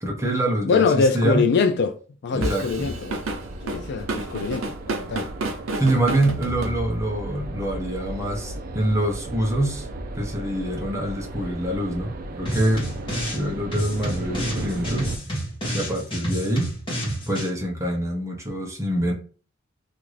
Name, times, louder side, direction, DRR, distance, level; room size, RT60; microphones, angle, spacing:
voice 1, 0.0-1.5 2.3-2.9 5.8-9.9 10.1-12.9 13.2-15.1 15.7-16.7 17.3-19.1, right 1 dB, 15° right, 0.8 m, -25 dB
voice 2, 0.7-3.2 3.6-5.3, left 4 dB, 55° left, 0.3 m, -23 dB
Drum kit / Drum, 2.4-7.2, right 2 dB, 85° right, 0.7 m, -30 dB
sound 1, 2.7-15.2, right 2 dB, 45° right, 0.4 m, -35 dB
sound 2, 12.5-13.4 13.7-17.5, equal, 25° left, 1.4 m, -30 dB
2.9 x 2.5 x 3.1 m
head